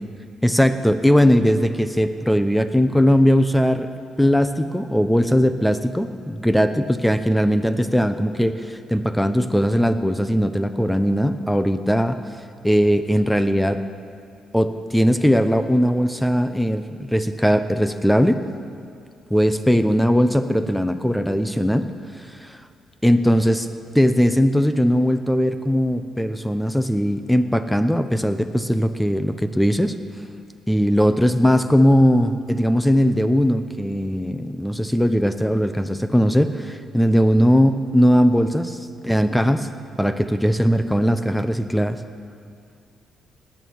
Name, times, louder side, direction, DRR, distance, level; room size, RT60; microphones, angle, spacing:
voice 1, 0.4-3.9 4.2-12.2 12.6-13.8 14.5-18.4 19.3-21.9 22.4-22.6 23.0-23.7 23.9-30.0 30.7-38.8 39.0-39.7 40.0-42.0, equal, 5° left, 10 dB, 0.7 m, -19 dB
18.0 x 9.5 x 6.3 m, 2.3 s
cardioid pair, 90°, 0 cm